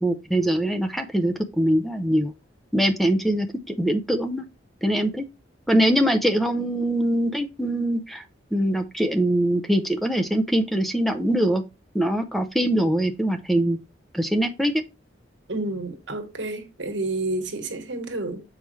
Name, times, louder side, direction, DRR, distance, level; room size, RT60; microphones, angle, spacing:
voice 1, 0.0-2.3 2.7-4.4 4.8-5.3 5.7-8.2 8.5-11.6 11.9-13.8 14.1-14.7, right 1 dB, ahead, 0.6 m, -23 dB
voice 2, 15.5-18.4, right 2 dB, 80° right, 1.3 m, -30 dB
7.0 x 4.9 x 3.1 m
head